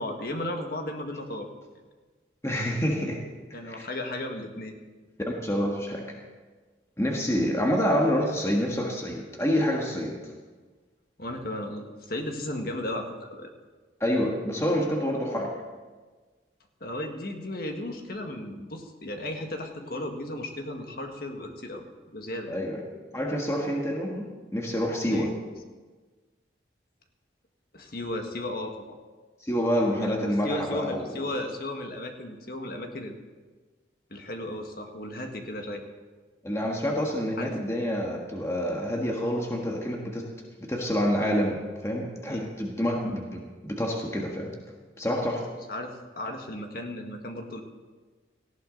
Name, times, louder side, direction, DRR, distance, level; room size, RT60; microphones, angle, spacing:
voice 1, 0.0-1.5 3.5-4.7 11.2-13.5 16.8-22.6 25.1-25.3 27.7-29.0 30.0-33.2 34.1-35.8 37.4-37.5 42.3-42.5 45.7-47.6, left 1 dB, 50° left, 3 dB, 1.7 m, -35 dB
voice 2, 2.4-3.2 3.7-3.9 5.2-6.2 7.0-10.3 14.0-15.6 22.5-22.8 23.1-25.3 29.4-31.2 36.4-40.3 40.6-44.5 45.0-45.5, equal, 15° left, -1 dB, 1.5 m, -27 dB
18.0 x 15.0 x 4.0 m, 1.4 s
head